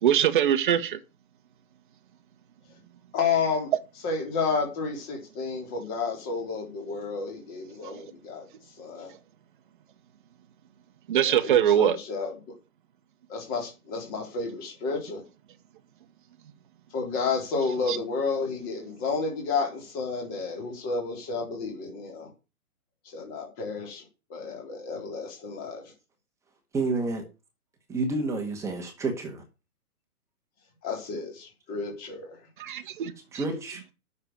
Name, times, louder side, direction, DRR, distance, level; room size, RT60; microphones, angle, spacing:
voice 1, 0.0-1.0 7.8-7.9 11.1-12.0 17.9-18.0 32.6-33.1, right 10 dB, 35° right, 1.3 m, -22 dB
voice 2, 3.1-3.7 4.0-8.5 8.8-9.1 11.2-12.3 13.3-15.2 16.9-22.3 23.1-24.0 24.3-25.9 30.8-32.4, left 4 dB, 20° left, 3.7 m, -31 dB
voice 3, 26.7-27.2 27.9-29.4 33.3-33.9, right 3 dB, 5° right, 1.7 m, -29 dB
8.6 x 6.9 x 8.0 m
hypercardioid pair, 155°, 44 cm